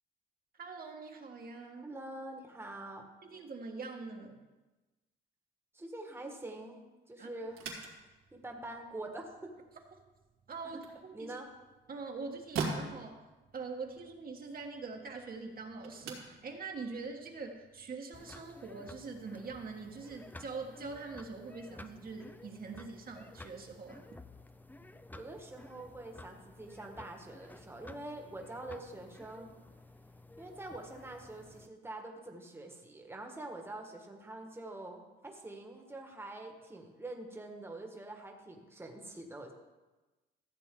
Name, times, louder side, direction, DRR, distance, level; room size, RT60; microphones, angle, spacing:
voice 1, 0.6-1.9 3.2-4.5 7.2-7.3 10.5-11.3 11.9-13.2 13.5-24.0, right 4 dB, 45° right, 2 dB, 1.5 m, -43 dB
voice 2, 1.8-3.1 5.7-6.8 7.1-7.6 8.3-9.5 11.1-11.5 25.1-29.5 30.4-39.5, right 2 dB, 10° right, 2 dB, 1.5 m, -45 dB
sound 1, 7.4-17.9, right 4 dB, 80° right, 2.8 m, -45 dB
sound 2, 18.1-31.7, left 2 dB, 10° left, 0.6 m, -53 dB
14.0 x 7.9 x 3.8 m, 1.2 s
cardioid pair, 90°, 20 cm